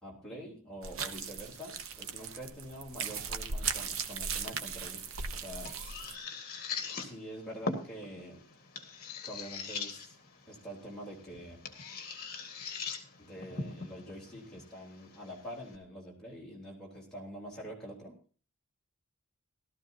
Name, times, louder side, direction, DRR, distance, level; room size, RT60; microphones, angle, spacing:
voice 1, 0.0-5.8 7.0-8.4 9.2-10.2 10.5-11.8 13.2-18.2, equal, 5° left, -5 dB, 3.8 m, -46 dB
sound 1, 0.8-6.1, right 6 dB, 65° right, 0.9 m, -38 dB
sound 2, 4.8-15.8, left 4 dB, 40° left, 1.8 m, -42 dB
16.5 x 13.0 x 2.8 m, 0.39 s
head